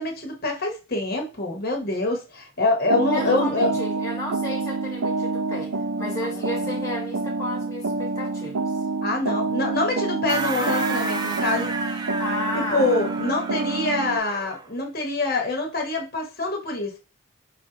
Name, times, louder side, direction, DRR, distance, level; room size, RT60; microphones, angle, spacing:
voice 1, 0.0-3.7 6.2-6.4 9.0-12.1 12.5-17.0, left 2 dB, 45° left, 1.0 m, -25 dB
sound 1, 2.9-14.2, right 3 dB, 80° right, 0.5 m, -27 dB
voice 2, 3.1-8.7 12.2-12.9, left 1 dB, 15° left, 1.0 m, -33 dB
sound 2, 10.3-14.7, right 3 dB, 20° right, 0.4 m, -31 dB
4.9 x 2.5 x 3.8 m
head